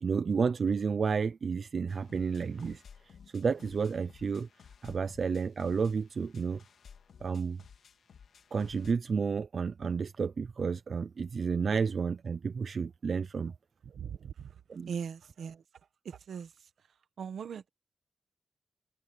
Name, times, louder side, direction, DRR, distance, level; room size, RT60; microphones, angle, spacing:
voice 1, 0.0-2.8 3.3-4.5 4.8-6.6 7.2-7.6 8.5-13.5 14.7-14.9, right 5 dB, 45° right, 0.5 m, -31 dB
sound 1, 1.9-8.9, left 7 dB, 70° left, 3.2 m, -56 dB
voice 2, 13.8-14.5 14.9-15.6 16.0-16.5 17.2-17.7, right 7 dB, 75° right, 1.4 m, -39 dB
wide cardioid pair, 150°, 0 cm